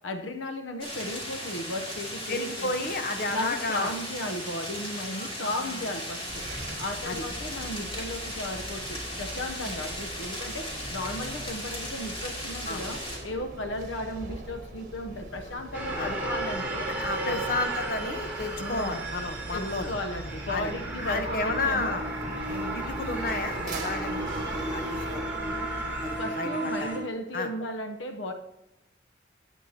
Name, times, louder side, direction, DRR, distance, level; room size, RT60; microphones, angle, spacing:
voice 1, 0.0-2.9 3.3-6.5 6.8-16.9 17.2-17.4 18.6-19.0 19.5-22.0 22.5-22.8 26.2-28.3, left 1 dB, 75° left, 6 dB, 0.8 m, -35 dB
sound 1, 0.8-13.2, equal, 30° left, 2.9 m, -37 dB
voice 2, 2.3-3.9 5.2-5.8 7.0-7.2 12.7-12.8 16.0-16.2 16.9-19.9 20.5-20.7 21.1-22.0 22.7-25.3 26.0-26.9 27.3-27.5, left 2 dB, 45° left, 6 dB, 1.0 m, -32 dB
sound 2, 6.3-26.2, right 1 dB, 45° right, 1.6 m, -41 dB
sound 3, 15.7-27.0, right 2 dB, 10° right, 3.3 m, -33 dB
16.5 x 10.0 x 2.8 m, 0.88 s
head